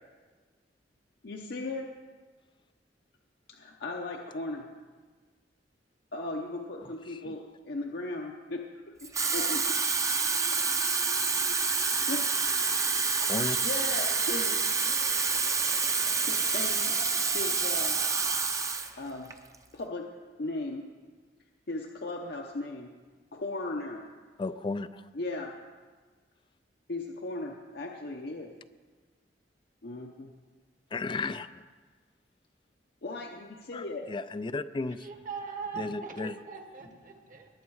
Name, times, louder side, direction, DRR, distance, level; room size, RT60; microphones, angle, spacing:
voice 1, 1.2-1.9 3.5-4.7 6.1-9.8 12.1-12.2 13.6-14.9 16.3-17.0 17.3-18.0 18.9-19.3 19.7-20.1 20.4-20.9 21.7-22.9 23.3-24.0 25.1-25.6 26.9-28.5 29.8-30.3 33.0-34.1, left 2 dB, 65° left, 0.8 m, -37 dB
Water tap faucet / Fill (with liquid), 9.0-18.9 19.3-19.6, right 4 dB, 20° right, 0.7 m, -28 dB
voice 2, 13.2-13.6 24.4-25.0 30.9-31.5 33.7-35.1 35.8-36.4, left 3 dB, 30° left, 0.4 m, -34 dB
voice 3, 35.0-37.5, right 5 dB, 50° right, 1.5 m, -40 dB
20.0 x 7.3 x 4.7 m
head